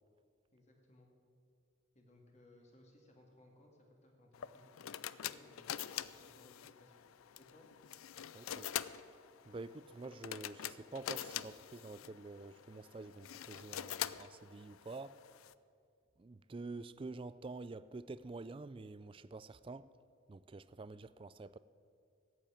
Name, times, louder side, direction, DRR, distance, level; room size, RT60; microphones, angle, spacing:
voice 1, 0.5-1.1 1.9-7.1 7.4-7.7, left 1 dB, 35° left, 2.0 m, -64 dB
sound 1, 4.3-15.5, left 11 dB, 85° left, 0.4 m, -45 dB
voice 2, 8.3-8.7 9.4-15.2 16.2-19.9 20.3-21.6, right 3 dB, 25° right, 0.3 m, -48 dB
14.0 x 8.3 x 8.6 m
head